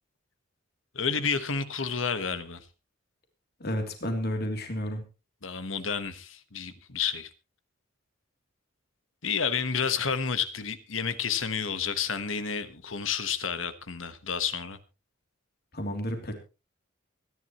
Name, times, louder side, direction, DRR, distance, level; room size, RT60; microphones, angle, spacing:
voice 1, 0.9-2.6 5.4-7.3 9.2-14.8, left 6 dB, 75° left, 1.3 m, -30 dB
voice 2, 3.6-5.0 15.7-16.4, equal, 55° left, 3.0 m, -31 dB
24.0 x 11.0 x 3.1 m
head